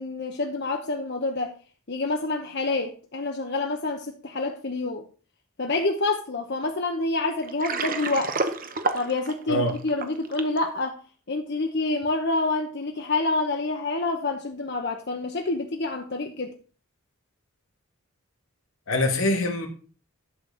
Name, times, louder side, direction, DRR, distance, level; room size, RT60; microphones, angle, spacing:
voice 1, 0.0-1.5 1.9-5.0 5.6-8.4 8.9-11.0 11.3-16.5, left 3 dB, 50° left, 4 dB, 0.9 m, -27 dB
Water, 7.4-10.6, right 3 dB, 40° right, 0.9 m, -29 dB
voice 2, 18.9-19.7, left 1 dB, 70° left, 2 dB, 2.4 m, -24 dB
11.5 x 4.0 x 7.3 m, 0.38 s
head